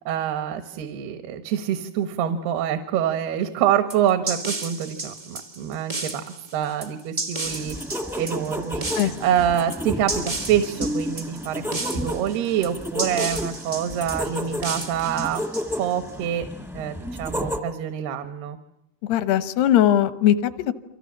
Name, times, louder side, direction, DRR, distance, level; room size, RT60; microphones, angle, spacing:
voice 1, 0.1-6.2 6.5-7.8 8.2-15.4 15.8-16.5 16.7-18.6, right 10 dB, 80° right, 9 dB, 3.2 m, -26 dB
sound 1, 3.9-16.1, right 2 dB, 55° right, 0.5 m, -33 dB
sound 2, 7.4-17.6, equal, ahead, 0.5 m, -32 dB
voice 2, 19.0-20.7, left 11 dB, 85° left, 12 dB, 3.2 m, -20 dB
29.0 x 25.0 x 7.3 m, 0.87 s
omnidirectional pair, 4.5 m